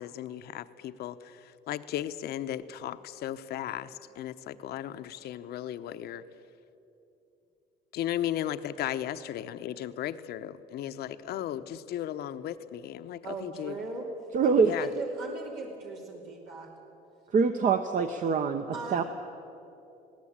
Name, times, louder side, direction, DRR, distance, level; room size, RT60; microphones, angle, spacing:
voice 1, 0.0-6.2 7.9-13.7 14.6-14.9, left 11 dB, 70° left, 11 dB, 0.9 m, -36 dB
voice 2, 13.2-14.1 14.4-16.7 18.7-19.0, right 3 dB, 80° right, -1 dB, 3.0 m, -39 dB
voice 3, 14.3-14.7 17.3-18.7 18.9-19.0, right 5 dB, 50° right, 7 dB, 1.0 m, -24 dB
20.5 x 17.0 x 8.8 m, 2.9 s
cardioid pair, 110°, 17 cm